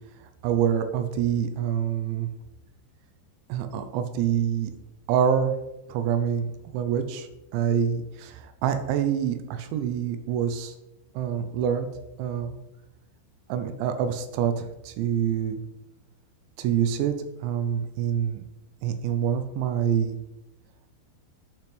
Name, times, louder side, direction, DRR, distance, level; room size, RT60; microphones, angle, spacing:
voice 1, 0.4-2.3 3.5-4.7 5.1-5.5 5.9-10.7 11.1-11.9 12.2-12.6 13.5-15.6 16.6-17.2 17.4-18.4 18.8-20.2, right 8 dB, 85° right, 8 dB, 2.9 m, -26 dB
8.5 x 6.9 x 3.3 m, 0.95 s
omnidirectional pair, 5.4 m